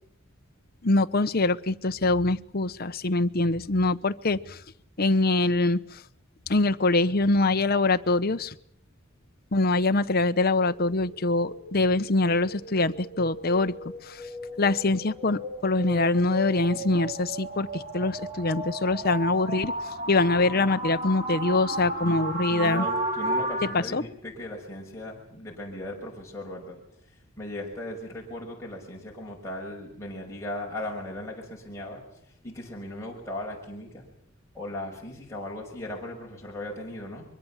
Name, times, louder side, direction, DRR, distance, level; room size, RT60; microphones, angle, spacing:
voice 1, 0.8-4.6 5.0-6.0 6.5-8.6 9.5-13.7 14.0-14.3 14.6-22.9 23.7-24.0, left 2 dB, 45° left, 10 dB, 0.9 m, -24 dB
sound 1, 10.7-23.7, right 1 dB, 35° right, 4.7 m, -34 dB
voice 2, 22.5-26.8 27.4-32.0 32.4-34.0 34.5-37.2, left 1 dB, 15° left, -3 dB, 5.9 m, -37 dB
23.5 x 23.5 x 7.3 m, 0.71 s
head